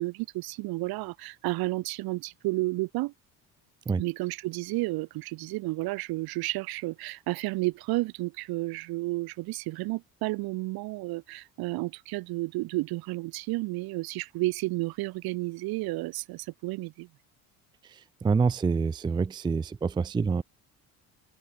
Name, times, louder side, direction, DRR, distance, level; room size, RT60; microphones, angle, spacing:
voice 1, 0.0-3.1 4.0-17.1, right 21 dB, 80° right, 3.9 m, -32 dB
voice 2, 18.2-20.4, right 5 dB, 15° right, 0.4 m, -26 dB
open air
cardioid pair, 130°, 36 cm